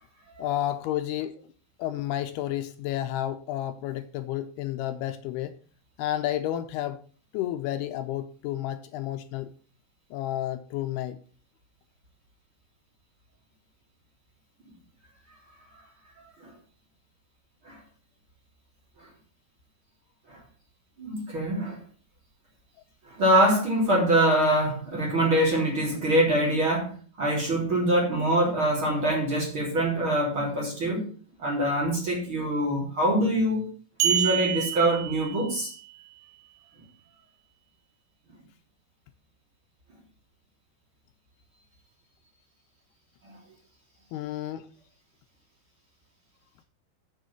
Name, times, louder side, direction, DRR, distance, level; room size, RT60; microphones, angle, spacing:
voice 1, 0.4-1.4 1.8-5.5 6.0-7.0 7.3-9.5 10.1-11.2 44.1-44.7, left 13 dB, 80° left, 2.5 m, -31 dB
voice 2, 21.0-21.8 23.1-31.1 31.4-33.7 34.0-35.7 43.2-43.3, right 1 dB, 30° right, 3.6 m, -24 dB
sound 1, 34.0-35.8, right 11 dB, 75° right, 3.5 m, -28 dB
7.4 x 6.5 x 7.1 m
omnidirectional pair, 4.7 m